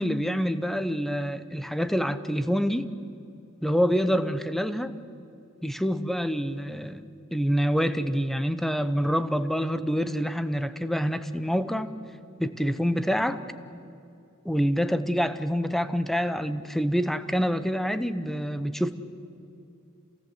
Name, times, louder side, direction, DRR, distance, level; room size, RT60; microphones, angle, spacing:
voice 1, 0.0-2.9 3.6-4.9 5.6-7.0 7.3-11.9 12.4-13.4 14.4-18.9, equal, ahead, 12 dB, 0.8 m, -26 dB
28.0 x 17.5 x 8.1 m, 2.6 s
head